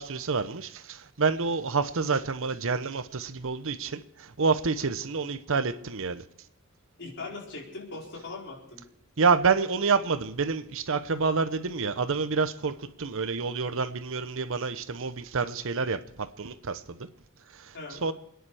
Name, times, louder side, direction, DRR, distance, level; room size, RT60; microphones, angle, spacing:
voice 1, 0.0-6.2 9.2-17.0 18.0-18.1, right 4 dB, 65° right, 0.8 m, -28 dB
voice 2, 7.0-8.8 17.7-18.0, left 3 dB, 55° left, 4.6 m, -40 dB
29.0 x 10.5 x 4.9 m
head